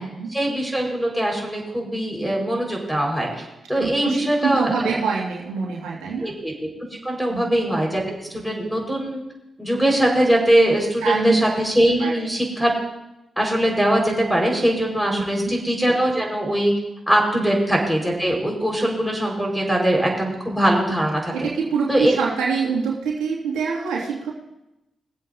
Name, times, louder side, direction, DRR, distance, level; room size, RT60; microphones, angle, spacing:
voice 1, 0.3-4.9 6.2-6.7 7.0-9.2 9.6-12.7 13.4-16.7 17.1-21.3 21.9-22.1, right 1 dB, ahead, -1 dB, 4.6 m, -21 dB
voice 2, 3.7-6.3 7.3-7.5 11.0-11.4 12.0-12.3 15.1-15.5 17.3-17.5 21.3-24.3, right 5 dB, 90° right, -4 dB, 2.2 m, -25 dB
21.5 x 7.9 x 2.7 m, 0.92 s
supercardioid pair, 45°, 0 cm